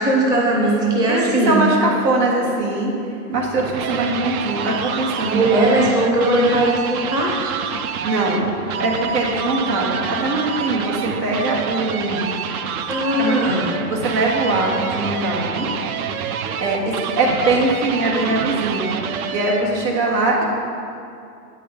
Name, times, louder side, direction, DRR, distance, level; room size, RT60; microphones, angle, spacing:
voice 1, 0.0-1.6 5.2-7.6 12.9-13.8, right 1 dB, 10° right, -3 dB, 0.5 m, -19 dB
voice 2, 0.8-5.6 8.0-12.3 13.2-13.4 13.9-15.7 16.6-18.9 19.3-20.4, right 2 dB, 85° right, -2 dB, 2.0 m, -22 dB
sound 1, 3.3-19.8, right 7 dB, 60° right, 0.6 m, -27 dB
8.5 x 5.4 x 5.1 m, 2.5 s
supercardioid pair, 145°, 48 cm